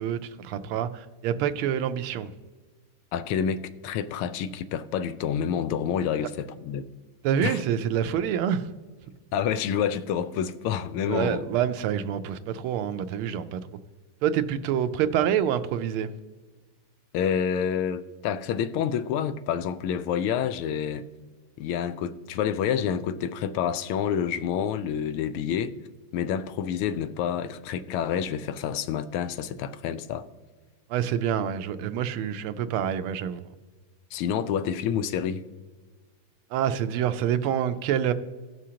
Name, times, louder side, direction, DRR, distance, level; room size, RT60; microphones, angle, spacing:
voice 1, 0.0-2.3 7.2-8.7 11.1-13.6 14.2-16.1 30.9-33.5 36.5-38.1, right 9 dB, 85° right, 1.5 m, -27 dB
voice 2, 3.1-6.9 7.4-7.6 9.3-11.4 17.1-21.0 21.6-25.8 26.1-30.3 34.1-35.4, left 8 dB, 85° left, 1.5 m, -28 dB
17.0 x 6.2 x 2.9 m
omnidirectional pair, 2.4 m